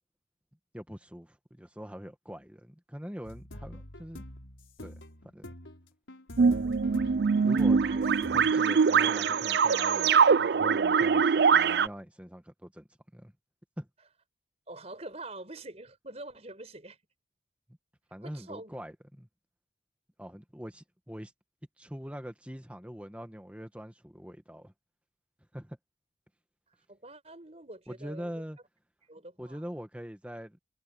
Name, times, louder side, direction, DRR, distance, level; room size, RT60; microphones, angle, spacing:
voice 1, 0.7-4.2 4.8-4.9 5.3-5.5 7.4-7.8 8.3-12.9 13.1-13.3 13.8-13.9 18.1-19.3 20.2-21.3 21.8-24.7 25.5-25.8 27.9-28.6 29.4-30.6, equal, 5° right, 1.7 m, -43 dB
sound 1, 3.2-8.5, left 1 dB, 90° left, 5.0 m, -45 dB
sound 2, 6.4-11.9, right 5 dB, 55° right, 0.4 m, -23 dB
voice 2, 7.8-8.2 14.7-17.0 18.2-18.8 26.9-28.4 29.1-29.6, right 2 dB, 35° right, 4.8 m, -45 dB
head